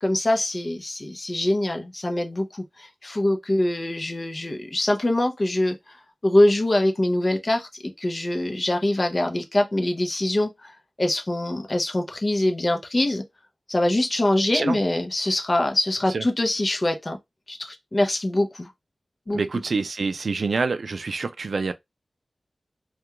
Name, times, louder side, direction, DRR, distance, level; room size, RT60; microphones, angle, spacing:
voice 1, 0.0-10.7 11.0-13.2 13.7-17.2 17.5-18.7 19.3-19.4, left 1 dB, 35° left, 0.6 m, -24 dB
voice 2, 19.3-21.7, right 4 dB, 75° right, 0.3 m, -26 dB
2.3 x 2.3 x 2.8 m
wide cardioid pair, 85°, 0 cm